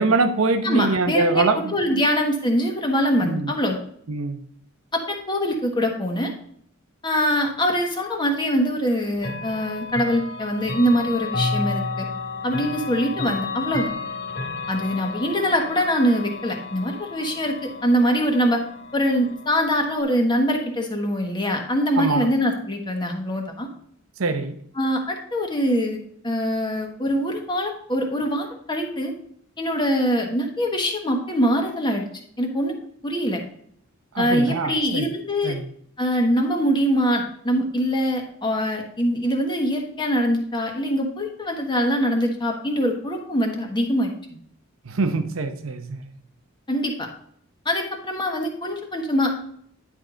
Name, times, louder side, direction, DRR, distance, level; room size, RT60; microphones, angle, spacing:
voice 1, 0.0-2.0 3.2-3.5 4.1-4.4 22.0-22.3 24.2-24.6 34.1-35.1 35.4-35.7 44.8-46.0, right 3 dB, 85° right, 0.8 m, -24 dB
voice 2, 0.6-1.4 1.7-3.8 4.9-6.3 7.0-12.1 12.4-13.9 14.7-18.6 18.9-23.7 24.8-29.1 29.6-32.1 32.4-32.7 33.0-33.4 34.2-35.6 36.0-44.1 46.7-47.1 47.6-49.3, equal, 25° left, 1.3 m, -23 dB
Chime / Clock, 9.2-20.0, left 3 dB, 70° left, 2.1 m, -32 dB
10.0 x 4.8 x 3.8 m
head